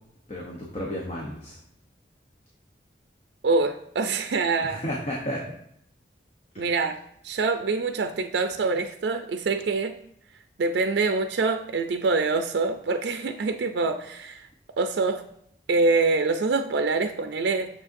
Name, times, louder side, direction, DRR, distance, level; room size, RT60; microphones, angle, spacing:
voice 1, 0.3-1.6 4.6-5.4 6.5-6.7, equal, 35° left, -2 dB, 0.8 m, -32 dB
voice 2, 3.4-4.8 6.6-7.0 7.2-9.9 10.6-14.5 14.8-15.2 15.7-17.7, right 3 dB, 75° right, 7 dB, 0.4 m, -25 dB
6.3 x 6.3 x 2.6 m, 0.72 s
head